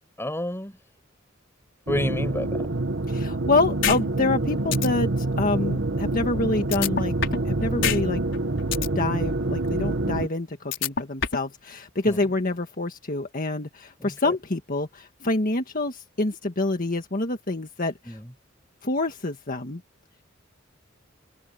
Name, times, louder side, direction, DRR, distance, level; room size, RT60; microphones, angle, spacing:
voice 1, 0.2-0.8 1.9-2.7 12.1-12.3 14.0-14.4 18.0-18.3, left 1 dB, 15° left, 6.8 m, -30 dB
sound 1, 1.9-10.3, right 2 dB, 65° right, 1.5 m, -26 dB
voice 2, 3.1-7.1 7.4-8.2 8.9-18.2 18.8-19.8, left 2 dB, 45° left, 1.7 m, -27 dB
sound 2, 3.8-4.0 4.3-4.4 4.7-4.9 6.7-7.5 7.8-8.0 8.3-8.9 10.7-11.5, left 7 dB, 65° left, 5.5 m, -25 dB
head